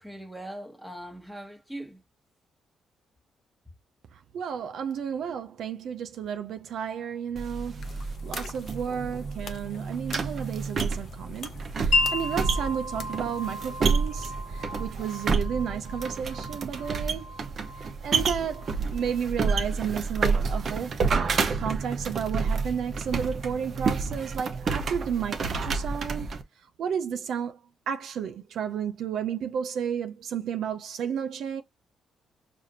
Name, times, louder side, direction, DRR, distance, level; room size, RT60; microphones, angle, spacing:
voice 1, 0.0-2.0, right 1 dB, ahead, 1.1 m, -40 dB
voice 2, 4.1-17.4 17.7-21.0 21.6-26.4 26.8-27.6 27.9-31.6, right 8 dB, 70° right, 0.4 m, -32 dB
sound 1, 7.4-26.4, right 4 dB, 50° right, 0.8 m, -29 dB
sound 2, 7.8-14.6, left 6 dB, 60° left, 0.6 m, -47 dB
Wind chime, 11.9-19.6, left 3 dB, 75° left, 0.9 m, -34 dB
4.8 x 2.5 x 2.7 m
cardioid pair, 75°, 0 cm